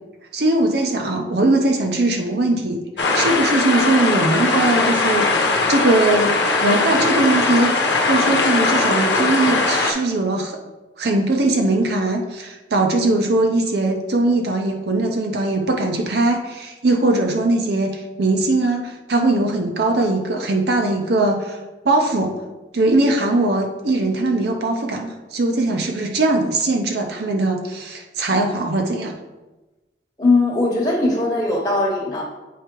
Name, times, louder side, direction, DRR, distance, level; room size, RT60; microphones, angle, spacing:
voice 1, 0.3-2.8 3.1-10.6 11.0-21.6 21.8-22.3 22.7-29.1, right 2 dB, 70° right, 3 dB, 0.6 m, -20 dB
sound 1, 3.0-9.9, left 3 dB, 85° left, 0.9 m, -19 dB
voice 2, 30.2-32.2, left 2 dB, 20° left, -5 dB, 1.0 m, -19 dB
8.2 x 4.5 x 3.0 m, 1.1 s
head